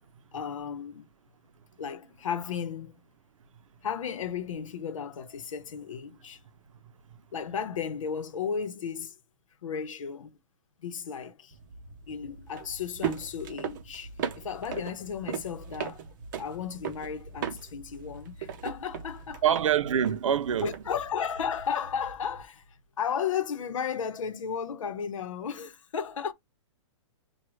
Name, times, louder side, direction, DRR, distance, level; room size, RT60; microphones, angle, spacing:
voice 1, 0.3-1.1 1.8-3.0 3.8-6.4 7.3-9.1 9.6-10.3 10.8-11.5 12.1-16.0 16.4-19.4 20.6-22.6 23.0-26.3, left 7 dB, 80° left, 0.8 m, -34 dB
sound 1, 11.5-22.4, right 7 dB, 40° right, 0.7 m, -39 dB
voice 2, 19.4-20.7, right 9 dB, 90° right, 0.5 m, -25 dB
6.1 x 2.3 x 3.0 m
hypercardioid pair, 165°, 16 cm